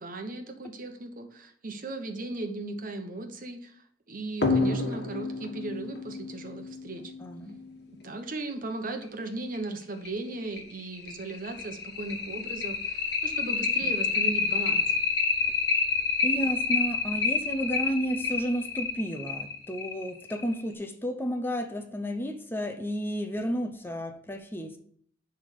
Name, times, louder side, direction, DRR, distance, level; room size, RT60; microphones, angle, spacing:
voice 1, 0.0-3.8 4.1-7.1 8.0-14.8, right 2 dB, 50° right, 1.1 m, -37 dB
sound 1, 4.4-7.6 9.0-9.1 9.5-9.6 10.0-10.1 10.6-20.6, left 4 dB, 65° left, 1.8 m, -28 dB
voice 2, 7.2-7.5 13.8-13.9 16.2-24.8, equal, 10° left, 0.7 m, -32 dB
11.0 x 3.6 x 6.6 m
head